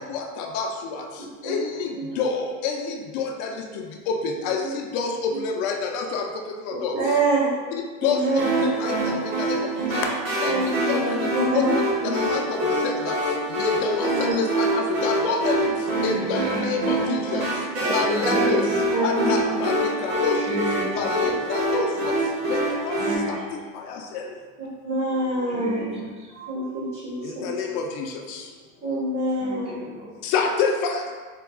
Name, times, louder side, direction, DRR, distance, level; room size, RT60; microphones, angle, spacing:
voice 1, 0.0-7.0 8.0-10.1 10.4-11.9 12.1-15.7 16.0-20.6 21.0-22.2 22.5-23.0 23.3-23.4 23.7-24.4 27.2-28.5 30.2-31.1, left 4 dB, 55° left, 2 dB, 0.5 m, -28 dB
voice 2, 6.7-7.5 8.0-8.7 10.4-12.1 14.0-14.3 17.7-17.9 18.2-18.4 18.9-19.3 24.8-25.8 26.3-27.5 28.8-29.7, right 2 dB, 30° right, -9 dB, 1.2 m, -26 dB
sound 1, 8.4-23.2, right 1 dB, 80° right, 1.2 m, -25 dB
voice 3, 10.5-11.4 16.1-17.0 18.0-18.8 20.3-21.2 23.0-23.5 25.5-26.3 29.4-30.2, right 2 dB, 15° right, -2 dB, 0.4 m, -33 dB
4.0 x 2.2 x 2.4 m, 1.4 s
supercardioid pair, 115°, 43 cm